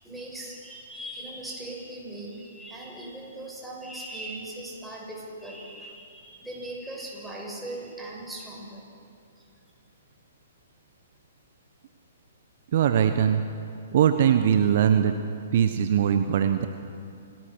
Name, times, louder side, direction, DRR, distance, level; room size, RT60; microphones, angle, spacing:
voice 1, 0.0-8.8, right 1 dB, 5° right, -4 dB, 6.4 m, -39 dB
voice 2, 12.7-13.4 13.9-15.1 15.5-16.7, right 9 dB, 50° right, 8 dB, 1.1 m, -21 dB
27.0 x 18.5 x 6.4 m, 2.5 s
figure-of-eight pair, 120°, 0 cm